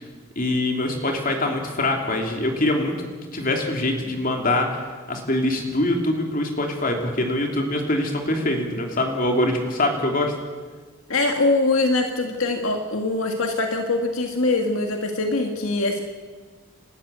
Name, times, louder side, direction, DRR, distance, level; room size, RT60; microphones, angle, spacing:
voice 1, 0.3-2.9 3.3-4.8 5.1-10.3, left 1 dB, 40° left, 2 dB, 3.2 m, -23 dB
voice 2, 11.1-16.0, left 2 dB, 70° left, 3 dB, 1.9 m, -23 dB
29.0 x 13.0 x 8.2 m, 1.5 s
head